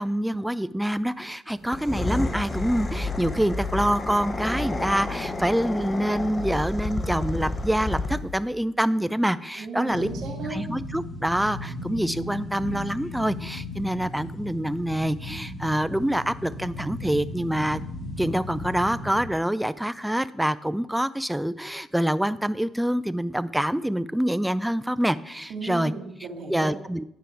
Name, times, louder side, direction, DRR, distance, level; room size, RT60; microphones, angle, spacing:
voice 1, 0.0-10.1 10.5-17.8 18.2-25.9 26.5-27.0, right 1 dB, 5° right, 16 dB, 0.3 m, -26 dB
sound 1, 1.6-8.4, left 2 dB, 30° left, 0.7 m, -30 dB
voice 2, 9.6-10.6 25.5-26.7, right 4 dB, 75° right, 0 dB, 1.9 m, -35 dB
sound 2, 9.9-19.3, left 1 dB, 45° left, 1.8 m, -36 dB
9.1 x 5.0 x 4.5 m, 0.78 s
cardioid pair, 90°, 0 cm